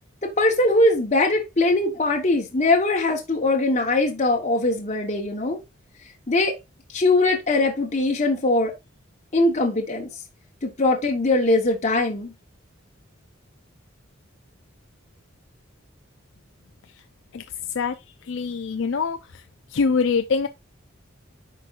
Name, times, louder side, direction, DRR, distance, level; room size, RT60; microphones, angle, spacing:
voice 1, 0.2-5.6 6.3-6.5 6.9-8.7 9.3-10.1 10.6-12.3, left 2 dB, 35° left, 1.0 m, -21 dB
voice 2, 18.2-19.4 19.7-20.5, left 5 dB, 65° left, 0.5 m, -24 dB
8.9 x 5.2 x 2.4 m
head